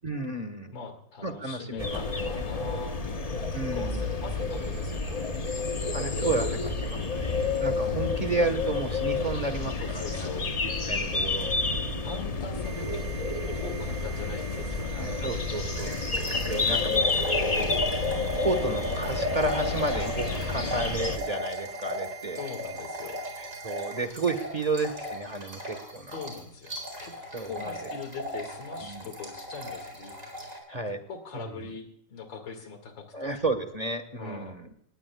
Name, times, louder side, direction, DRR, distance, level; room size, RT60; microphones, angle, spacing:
voice 1, 0.0-0.7 1.2-2.0 3.5-4.1 5.9-12.0 15.0-17.5 18.4-22.4 23.4-26.2 27.3-27.8 28.8-29.1 30.7-31.0 31.3-31.5 33.1-34.7, right 2 dB, 25° right, 9 dB, 1.2 m, -32 dB
voice 2, 0.7-5.7 6.9-7.2 7.8-8.2 9.8-10.5 12.0-13.0 13.5-15.2 17.6-18.0 20.5-20.8 22.4-23.2 26.1-27.2 27.4-30.1 30.4-30.6 31.1-33.3 34.2-34.6, left 5 dB, 70° left, 6 dB, 2.8 m, -42 dB
sound 1, 1.8-21.2, left 3 dB, 30° left, 0.7 m, -30 dB
sound 2, 12.6-24.1, right 12 dB, 60° right, 1.7 m, -46 dB
sound 3, 15.7-30.6, equal, 40° right, 4.7 m, -36 dB
19.0 x 17.5 x 2.3 m, 0.71 s
omnidirectional pair, 2.1 m